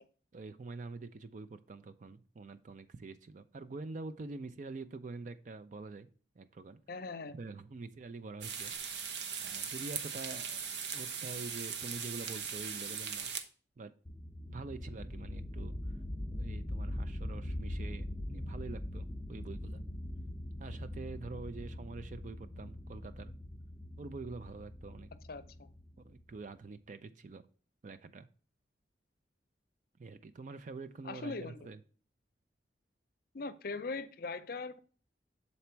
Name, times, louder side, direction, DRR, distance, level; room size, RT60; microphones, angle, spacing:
voice 1, 0.3-6.1 6.4-6.8 7.4-9.1 9.4-10.7 10.9-13.3 13.8-13.9 14.5-16.0 16.3-19.8 20.6-23.3 24.0-25.1 26.0-27.5 27.8-28.3 30.0-31.8, right 3 dB, 45° right, 11 dB, 0.4 m, -46 dB
voice 2, 6.9-7.4 25.3-25.7 31.0-31.7 33.3-34.8, left 3 dB, 55° left, 12 dB, 0.6 m, -40 dB
sound 1, 8.4-13.4, right 6 dB, 80° right, 0.9 m, -39 dB
sound 2, 14.1-26.4, left 1 dB, 15° left, 0.6 m, -42 dB
7.0 x 4.2 x 4.4 m, 0.40 s
head